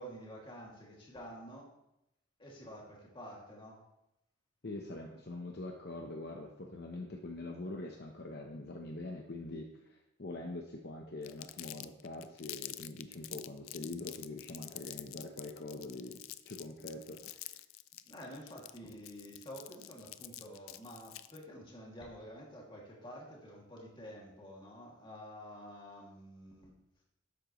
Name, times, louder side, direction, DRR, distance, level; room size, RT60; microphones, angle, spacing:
voice 1, 0.0-1.7 2.4-3.8 18.1-26.7, equal, 25° left, -3 dB, 2.4 m, -49 dB
voice 2, 4.6-17.6, left 2 dB, 50° left, 2 dB, 0.8 m, -44 dB
Crumpling crinkling, 11.2-21.4, left 15 dB, 85° left, 0.4 m, -47 dB
12.0 x 8.8 x 3.1 m, 0.86 s
head